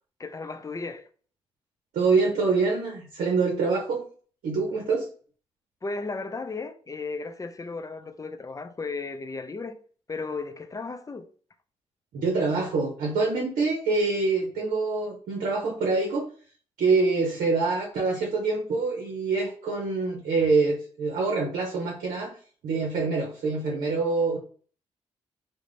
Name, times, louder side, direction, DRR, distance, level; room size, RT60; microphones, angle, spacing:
voice 1, 0.2-1.1 5.8-9.8 10.1-11.3, left 3 dB, 25° left, 0.4 m, -35 dB
voice 2, 1.9-4.0 4.4-5.1 12.1-16.3 16.8-22.3 22.6-24.4, right 4 dB, 75° right, 0.7 m, -25 dB
2.4 x 2.1 x 3.2 m
hypercardioid pair, 45°, 14 cm